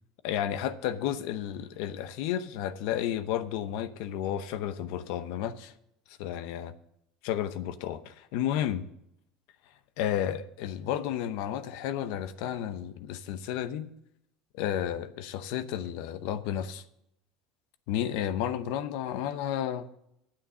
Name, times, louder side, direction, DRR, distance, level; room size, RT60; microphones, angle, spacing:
voice 1, 0.2-5.7 6.2-6.7 7.2-8.9 10.0-13.9 14.5-16.8 17.9-19.9, left 10 dB, 70° left, 12 dB, 0.8 m, -32 dB
9.9 x 8.8 x 6.2 m, 0.78 s
cardioid pair, 140°, 0 cm